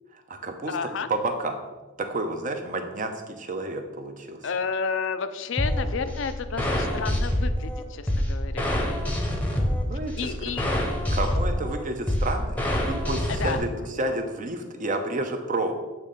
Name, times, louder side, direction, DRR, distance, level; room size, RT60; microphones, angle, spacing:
voice 1, 0.1-0.7 1.1-1.6 2.0-4.4 9.9-10.5 11.1-15.7, right 2 dB, 40° right, 5 dB, 0.7 m, -30 dB
voice 2, 0.7-1.1 4.4-8.7 9.9-10.7 13.4-13.6, left 5 dB, 65° left, 10 dB, 0.5 m, -31 dB
sound 1, 5.6-13.6, left 1 dB, 5° left, 0.8 m, -26 dB
8.3 x 3.2 x 5.2 m, 1.2 s
head